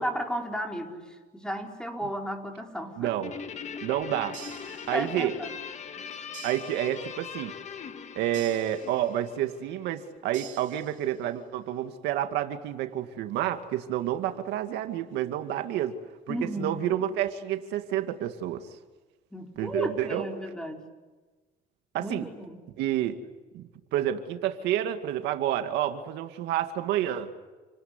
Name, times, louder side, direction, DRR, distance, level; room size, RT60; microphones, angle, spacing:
voice 1, 0.0-3.1 4.7-5.5 16.3-16.8 19.3-20.9 22.0-22.6, equal, 5° left, 2 dB, 5.0 m, -34 dB
voice 2, 3.0-3.3 3.8-4.4 4.9-5.3 6.4-7.5 8.2-16.0 16.3-18.7 19.6-20.2 21.9-22.3 22.8-23.2 23.5-23.6 23.9-27.3, right 12 dB, 90° right, 6 dB, 2.2 m, -29 dB
Guitar, 3.2-9.9, left 7 dB, 45° left, 1.7 m, -41 dB
sound 1, 4.3-5.4 6.3-7.4 8.3-9.4 10.3-11.4, right 10 dB, 50° right, 3.0 m, -48 dB
30.0 x 18.5 x 9.8 m, 1.3 s
cardioid pair, 110°, 17 cm